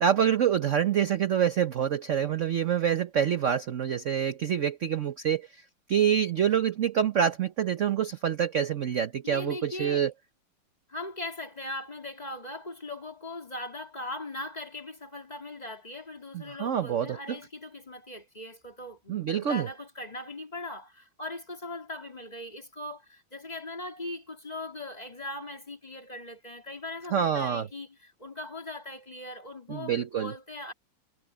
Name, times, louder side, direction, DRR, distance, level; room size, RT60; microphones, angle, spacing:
voice 1, 0.0-5.6 5.9-10.1 16.3-17.4 19.1-19.7 27.1-27.7 29.7-30.3, right 8 dB, 55° right, 0.8 m, -26 dB
voice 2, 9.2-10.1 10.9-30.7, left 2 dB, 20° left, 2.5 m, -40 dB
omnidirectional pair, 2.3 m